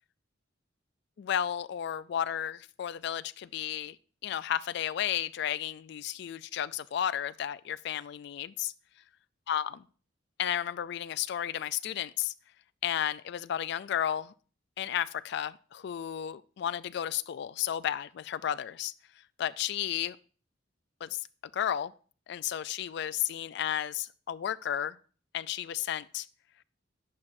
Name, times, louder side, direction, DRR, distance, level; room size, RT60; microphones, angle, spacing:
voice 1, 1.2-4.0 4.2-8.7 9.5-9.8 10.4-12.3 12.8-14.3 14.8-18.9 19.4-20.2 21.0-21.2 21.5-21.9 22.3-25.0 25.3-26.3, left 10 dB, 60° left, 0.3 m, -33 dB
10.5 x 5.7 x 2.6 m
head